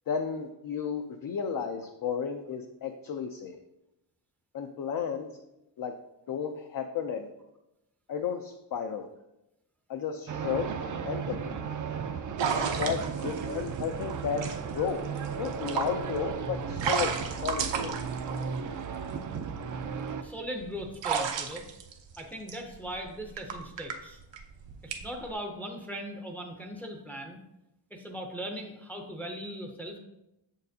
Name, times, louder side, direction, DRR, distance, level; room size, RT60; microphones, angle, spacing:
voice 1, 0.1-3.6 4.5-5.3 5.8-5.9 6.3-7.3 8.1-9.1 9.9-10.7 11.1-11.6 12.6-15.0 15.4-18.0, left 7 dB, 50° left, 5 dB, 0.5 m, -33 dB
sound 1, 10.3-20.2, right 6 dB, 45° right, 0.4 m, -35 dB
sound 2, 12.4-19.0 19.7-25.3, right 6 dB, 80° right, 0.8 m, -34 dB
voice 2, 20.2-21.6 22.2-24.2 24.8-27.4 27.9-30.0, equal, 5° left, 2 dB, 0.5 m, -39 dB
7.2 x 6.5 x 2.7 m, 0.90 s
wide cardioid pair, 180°, 43 cm